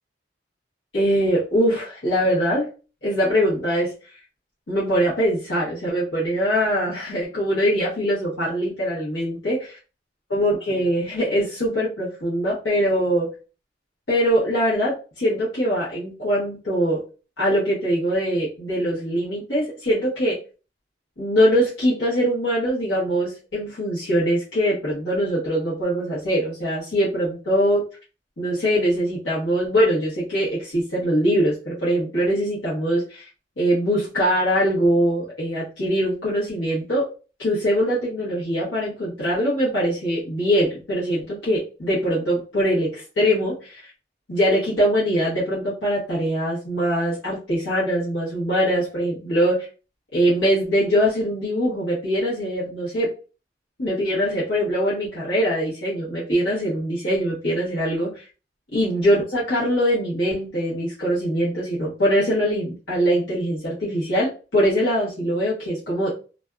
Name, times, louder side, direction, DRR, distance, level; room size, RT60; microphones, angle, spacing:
voice 1, 0.9-2.7 3.0-3.9 4.7-9.8 10.3-13.3 14.1-17.0 17.4-20.4 21.2-27.8 28.4-33.2 33.6-37.0 37.4-43.9 44.3-49.7 50.1-53.1 53.8-58.2 58.7-66.1, equal, 85° left, -9 dB, 1.1 m, -22 dB
2.5 x 2.4 x 2.2 m, 0.35 s
head